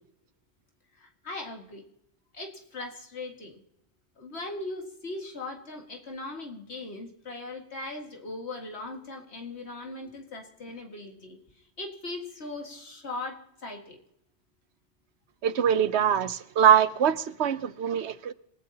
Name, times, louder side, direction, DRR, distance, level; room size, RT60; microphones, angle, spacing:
voice 1, 1.0-1.8 2.3-3.6 4.2-11.4 11.8-14.0, left 2 dB, 80° left, 2.3 m, -39 dB
voice 2, 15.4-18.3, right 9 dB, 85° right, 1.1 m, -23 dB
28.0 x 16.0 x 2.9 m
omnidirectional pair, 1.1 m